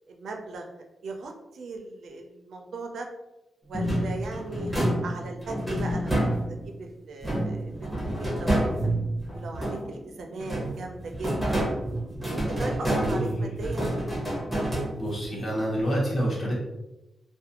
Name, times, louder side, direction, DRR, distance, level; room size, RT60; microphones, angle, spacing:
voice 1, 0.1-3.1 3.6-7.7 8.1-8.7 9.4-11.7 12.2-13.9, right 3 dB, 70° right, 3 dB, 0.4 m, -38 dB
sound 1, 3.7-6.8 7.2-10.0 10.4-15.3, right 1 dB, ahead, 0.7 m, -28 dB
voice 2, 12.9-13.5 15.0-16.5, equal, 35° left, -5 dB, 0.9 m, -28 dB
2.4 x 2.1 x 2.8 m, 0.97 s
wide cardioid pair, 170°, 0 cm